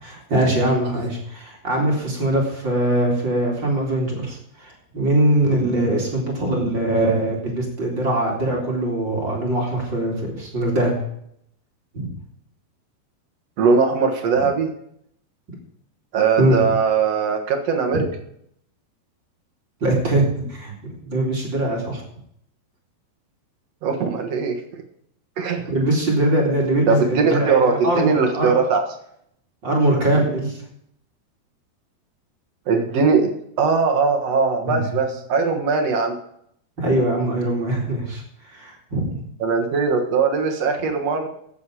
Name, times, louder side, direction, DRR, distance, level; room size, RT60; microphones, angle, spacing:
voice 1, 0.0-10.9 11.9-12.1 14.4-14.5 16.4-16.7 19.8-22.0 25.7-28.5 29.6-30.6 34.6-34.8 36.8-39.2, right 1 dB, 30° right, -1 dB, 2.7 m, -22 dB
voice 2, 13.6-14.7 16.1-18.1 23.8-24.6 25.4-25.6 26.9-28.8 32.7-33.3 33.6-36.2 39.4-41.3, right 5 dB, 55° right, 3 dB, 1.9 m, -20 dB
14.5 x 8.5 x 4.9 m, 0.70 s
omnidirectional pair, 4.8 m